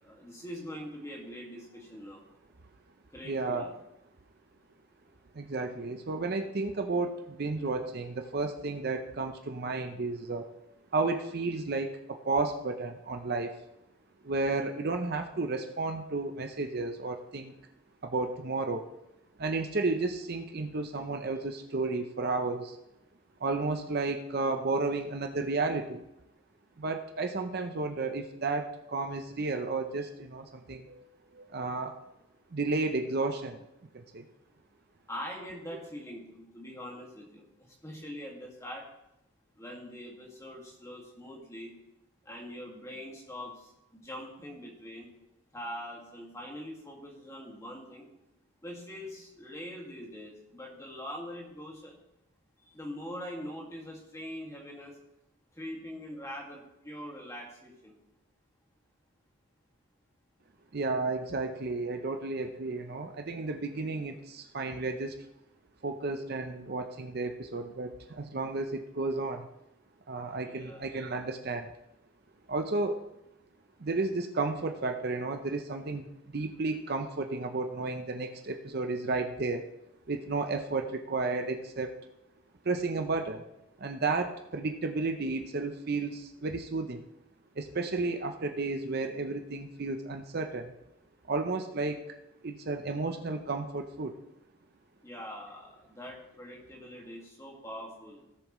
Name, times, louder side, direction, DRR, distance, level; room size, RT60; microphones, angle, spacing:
voice 1, 0.0-2.3 3.1-3.7 35.1-38.9 39.6-41.7 42.2-45.1 45.5-48.1 48.6-51.9 52.7-54.9 55.5-57.9 70.4-71.0 95.0-98.2, equal, 15° left, -1 dB, 1.9 m, -43 dB
voice 2, 3.2-3.7 5.3-10.5 10.9-13.5 14.2-17.5 18.0-18.8 19.4-22.8 23.4-26.0 26.8-31.0 31.3-31.9 32.5-33.6 33.9-34.3 60.7-65.2 65.8-69.5 70.1-71.7 72.5-73.0 73.8-76.1 76.3-79.7 80.1-81.9 82.6-83.4 83.8-87.0 87.6-90.7 91.3-92.2 92.4-94.2, right 3 dB, 45° right, 6 dB, 0.6 m, -32 dB
17.0 x 7.0 x 3.1 m, 0.88 s
head